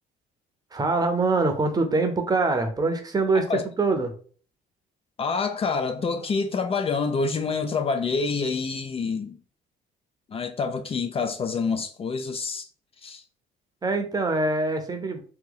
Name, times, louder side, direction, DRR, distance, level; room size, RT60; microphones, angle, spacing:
voice 1, 0.7-4.1 13.8-15.2, right 3 dB, 25° right, 0.7 m, -24 dB
voice 2, 5.2-9.4 10.3-12.7 13.0-13.2, left 4 dB, 35° left, 0.5 m, -27 dB
3.0 x 2.7 x 3.9 m
cardioid pair, 110°, 17 cm